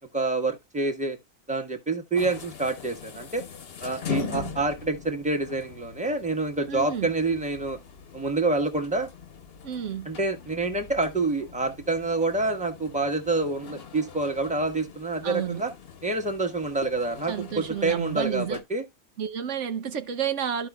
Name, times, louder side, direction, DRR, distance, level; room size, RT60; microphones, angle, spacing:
voice 1, 0.1-1.2 1.5-3.4 3.8-7.8 8.1-9.1 10.0-15.7 16.0-18.8, right 3 dB, 5° right, 1.3 m, -27 dB
sound 1, 2.1-18.6, left 8 dB, 55° left, 1.1 m, -42 dB
voice 2, 4.1-4.6 6.7-7.1 9.6-10.1 15.2-15.6 17.2-18.6 19.2-20.7, right 8 dB, 75° right, 1.1 m, -31 dB
13.5 x 5.0 x 2.3 m
omnidirectional pair, 1.3 m